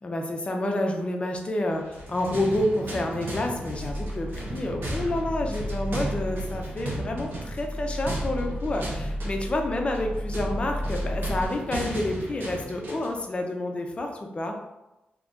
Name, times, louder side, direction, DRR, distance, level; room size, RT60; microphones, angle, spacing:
voice 1, 0.0-14.6, left 1 dB, 35° left, 2 dB, 0.5 m, -29 dB
sound 1, 1.8-13.2, right 1 dB, 80° right, 0.9 m, -36 dB
sound 2, 3.7-11.5, equal, 40° right, 0.5 m, -33 dB
2.8 x 2.6 x 3.5 m, 0.97 s
cardioid pair, 90°, 4 cm